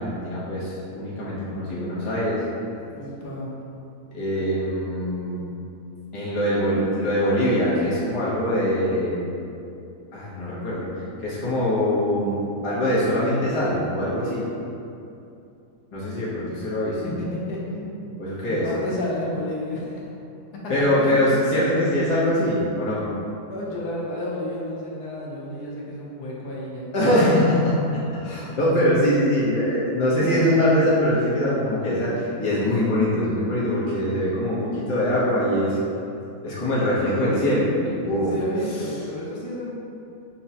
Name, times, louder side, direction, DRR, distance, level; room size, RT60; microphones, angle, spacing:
voice 1, 0.0-2.4 4.1-5.5 6.1-9.2 10.1-14.5 15.9-17.0 18.2-18.7 20.7-23.1 26.9-35.8 36.4-38.3, equal, 30° left, -8 dB, 0.6 m, -23 dB
voice 2, 2.9-3.6 17.0-18.2 18.4-20.1 20.5-20.6 21.0-21.4 23.5-26.9 30.3-30.6 38.1-39.7, left 1 dB, 80° left, -5 dB, 1.3 m, -31 dB
5.3 x 2.1 x 2.8 m, 2.6 s
omnidirectional pair, 1.7 m